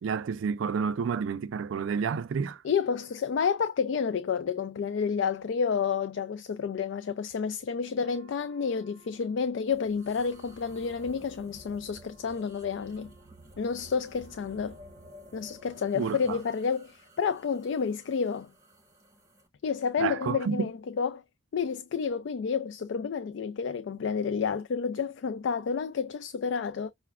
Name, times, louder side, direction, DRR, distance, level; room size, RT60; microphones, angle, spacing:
voice 1, 0.0-2.6 15.9-16.4 20.0-20.7, right 6 dB, 80° right, 0.3 m, -30 dB
voice 2, 2.6-13.1 13.6-14.8 15.3-18.5 19.6-21.2 21.5-26.9, left 6 dB, 70° left, 0.3 m, -30 dB
Wind instrument woodwind instrument, 8.0-15.9, right 2 dB, 5° left, 1.9 m, -61 dB
sound 1, 9.7-19.5, equal, 15° right, 1.0 m, -53 dB
5.7 x 2.1 x 2.4 m
head